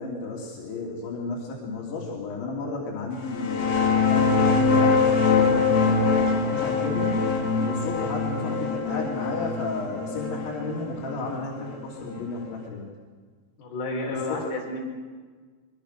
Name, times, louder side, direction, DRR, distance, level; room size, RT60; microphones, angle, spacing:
voice 1, 0.0-3.8 4.1-7.3 7.6-12.9 14.1-14.4, left 3 dB, 85° left, -3 dB, 5.4 m, -33 dB
sound 1, 3.2-12.5, left 4 dB, 40° left, 3.2 m, -23 dB
voice 2, 13.6-14.8, left 2 dB, 60° left, -1 dB, 6.6 m, -31 dB
24.5 x 23.5 x 6.7 m, 1.5 s
omnidirectional pair, 5.1 m